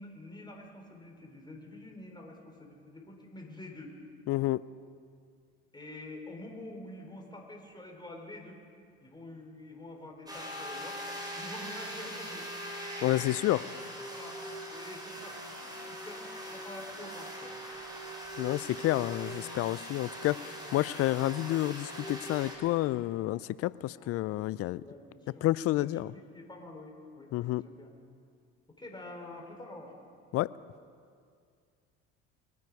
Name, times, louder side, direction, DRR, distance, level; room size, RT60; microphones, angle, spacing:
voice 1, 0.0-4.0 5.7-8.6 9.0-11.0 11.4-12.5 13.6-17.6 23.8-25.5 25.8-27.9 28.8-29.9, left 2 dB, 15° left, 1 dB, 3.9 m, -47 dB
voice 2, 4.3-4.6 13.0-13.7 18.4-24.8 25.4-26.1 27.3-27.6 30.3-30.5, left 16 dB, 50° left, 19 dB, 0.4 m, -29 dB
sound 1, 10.3-22.6, equal, 15° right, 3.9 m, -41 dB
22.0 x 9.5 x 4.8 m, 2.2 s
hypercardioid pair, 75°, 31 cm